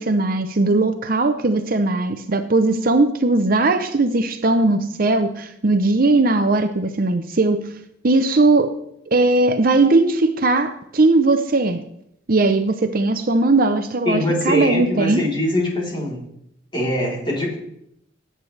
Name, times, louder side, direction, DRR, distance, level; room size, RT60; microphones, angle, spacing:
voice 1, 0.0-7.7 8.0-8.7 9.1-11.8 12.3-15.2, right 2 dB, 45° right, 8 dB, 0.7 m, -18 dB
voice 2, 14.1-16.2 16.7-17.6, left 1 dB, 25° left, -3 dB, 3.6 m, -22 dB
17.5 x 8.9 x 3.3 m, 0.76 s
head